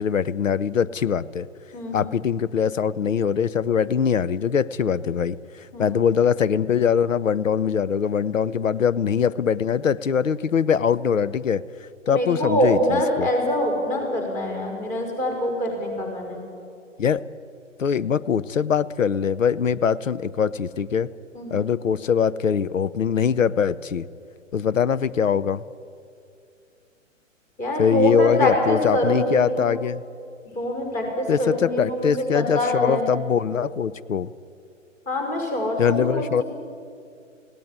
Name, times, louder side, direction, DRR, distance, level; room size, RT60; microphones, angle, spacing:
voice 1, 0.0-1.5 1.9-11.6 12.1-13.3 17.0-17.2 17.8-21.1 21.5-24.1 24.5-25.6 27.8-30.0 31.3-34.3 35.8-36.4, left 7 dB, 75° left, 17 dB, 0.8 m, -22 dB
voice 2, 1.7-2.1 5.7-6.0 12.1-16.4 21.3-21.7 27.6-29.7 30.5-33.1 35.1-36.4, equal, 20° left, 2 dB, 5.5 m, -25 dB
19.0 x 17.0 x 9.7 m, 2.4 s
figure-of-eight pair, 130°, 39 cm